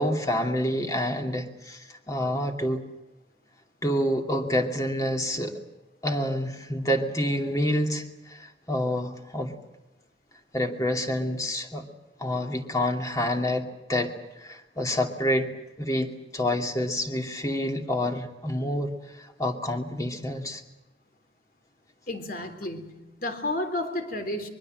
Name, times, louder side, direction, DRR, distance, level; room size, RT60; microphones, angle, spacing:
voice 1, 0.0-2.8 3.8-5.6 6.0-9.6 10.5-11.9 12.2-14.1 14.4-20.6, left 1 dB, 20° left, 4 dB, 2.5 m, -28 dB
voice 2, 22.1-24.5, left 1 dB, 50° left, 7 dB, 3.6 m, -32 dB
24.0 x 22.5 x 7.8 m, 1.0 s
head